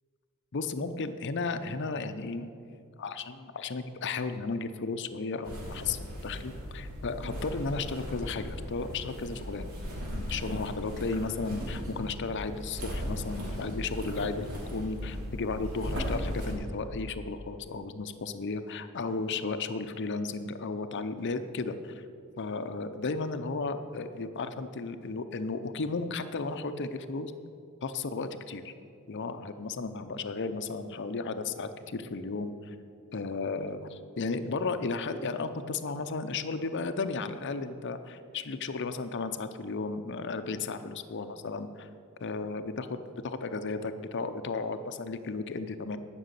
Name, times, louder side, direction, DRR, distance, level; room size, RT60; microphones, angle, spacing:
voice 1, 0.5-2.5 3.0-9.7 10.1-22.0 22.4-27.3 27.8-28.7 29.1-32.7 33.1-41.9 42.2-43.0 43.2-46.0, left 4 dB, 55° left, 9 dB, 0.6 m, -34 dB
sound 1, 5.4-16.5, equal, 75° right, 2.8 m, -37 dB
11.5 x 6.2 x 8.2 m, 2.4 s
head